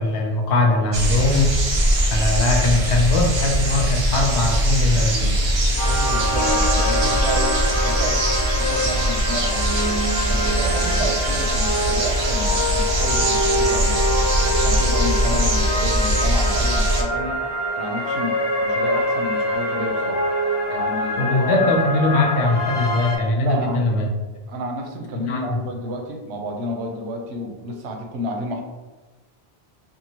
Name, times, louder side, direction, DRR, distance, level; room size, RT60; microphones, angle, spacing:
voice 1, 0.0-1.6 2.1-5.3 21.2-24.1 25.3-25.6, left 2 dB, 90° left, 2 dB, 0.9 m, -20 dB
sound 1, 0.9-17.0, right 1 dB, 45° right, 0.4 m, -21 dB
sound 2, 5.8-23.2, equal, 45° left, 0.3 m, -25 dB
voice 2, 5.8-7.6 7.8-9.9 10.3-14.1 14.6-17.4 17.8-20.2 20.7-21.7 23.4-23.8 24.5-28.6, equal, 80° right, 2 dB, 0.8 m, -30 dB
2.6 x 2.6 x 2.8 m, 1.2 s
omnidirectional pair, 1.1 m